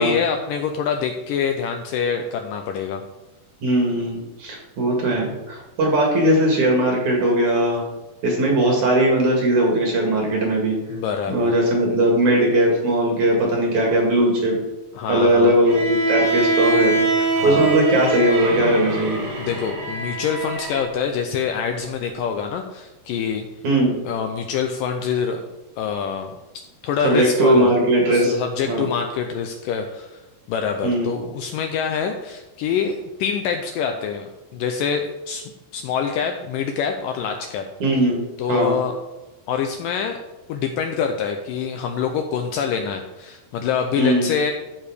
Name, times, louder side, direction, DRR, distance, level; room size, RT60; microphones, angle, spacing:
voice 1, 0.0-3.0 10.9-11.5 14.9-15.6 17.4-17.7 19.4-23.5 24.1-25.4 25.8-26.3 26.8-27.7 28.1-30.2 30.5-37.6 38.4-38.9 39.5-40.2 40.5-44.5, left 7 dB, 80° left, 4 dB, 2.0 m, -25 dB
voice 2, 3.6-7.8 8.2-10.8 11.3-14.6 15.1-19.2 23.6-23.9 27.0-28.3 28.7-28.9 30.8-31.1 37.8-38.8 44.0-44.3, right 1 dB, 55° right, 0 dB, 3.1 m, -19 dB
Bowed string instrument, 15.7-20.9, right 2 dB, 85° right, 4.6 m, -23 dB
13.5 x 4.8 x 5.0 m, 1.1 s
omnidirectional pair, 4.4 m